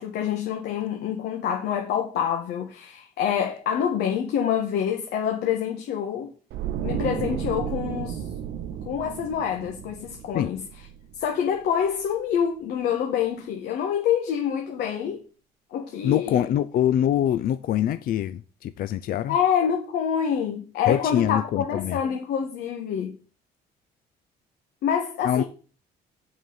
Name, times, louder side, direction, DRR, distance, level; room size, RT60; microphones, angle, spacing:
voice 1, 0.0-6.3 6.8-8.3 8.8-10.6 11.1-15.2 15.7-16.4 19.3-23.2 24.8-25.4, left 8 dB, 75° left, 1.4 m, -26 dB
sound 1, 6.5-11.6 11.9-12.1, right 9 dB, 80° right, 0.8 m, -33 dB
voice 2, 16.0-19.4 20.9-22.0 25.2-25.4, left 11 dB, 60° left, 0.5 m, -24 dB
6.5 x 5.7 x 7.1 m
cardioid pair, 110°, 17 cm